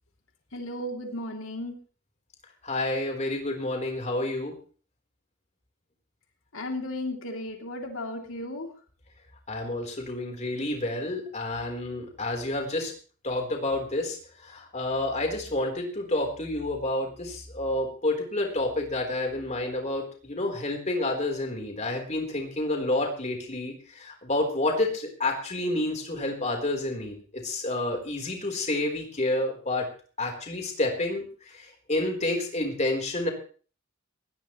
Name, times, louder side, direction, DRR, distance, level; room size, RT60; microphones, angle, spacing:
voice 1, 0.5-1.8 6.5-8.7, left 1 dB, 85° left, 2 dB, 3.1 m, -34 dB
voice 2, 2.6-4.5 9.5-12.9 13.2-29.9 30.2-33.3, left 2 dB, 35° left, 2 dB, 4.1 m, -29 dB
20.0 x 17.0 x 3.2 m, 0.41 s
head